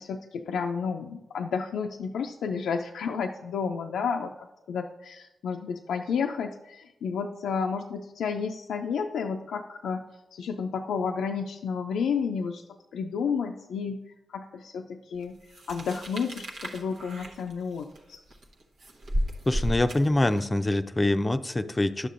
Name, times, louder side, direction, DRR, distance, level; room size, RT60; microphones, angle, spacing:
voice 1, 0.0-10.0 10.3-12.6 12.9-14.0 14.3-15.4 15.7-18.2, left 6 dB, 90° left, 3 dB, 0.3 m, -31 dB
sound 1, 15.5-20.6, equal, 80° right, 0.9 m, -34 dB
voice 2, 19.5-22.1, left 1 dB, 25° left, 9 dB, 0.4 m, -25 dB
11.5 x 6.7 x 2.5 m, 1.0 s
cardioid pair, 55°, 0 cm